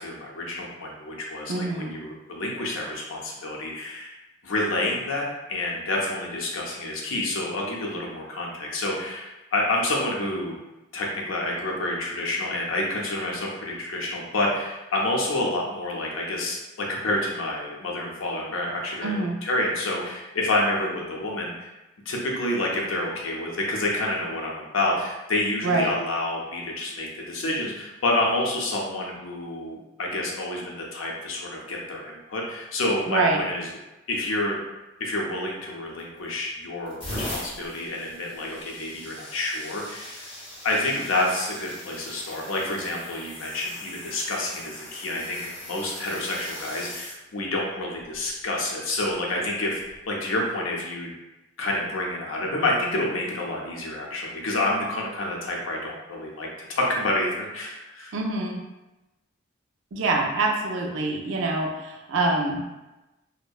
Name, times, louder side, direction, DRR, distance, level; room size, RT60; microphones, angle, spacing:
voice 1, 0.0-4.1 4.4-10.6 10.9-21.7 22.1-33.7 34.1-34.6 35.0-40.3 40.6-49.8 50.1-51.1 51.6-58.1, left 1 dB, 80° left, -2 dB, 0.6 m, -28 dB
voice 2, 1.5-2.0 19.0-19.4 25.6-25.9 33.1-33.4 58.1-58.6 59.9-62.7, right 2 dB, 70° right, 1 dB, 0.4 m, -25 dB
sound 1, 36.0-36.3 36.8-47.2 48.0-48.3 49.8-50.0, left 1 dB, 25° left, 0.6 m, -40 dB
2.6 x 2.1 x 2.3 m, 1.0 s
head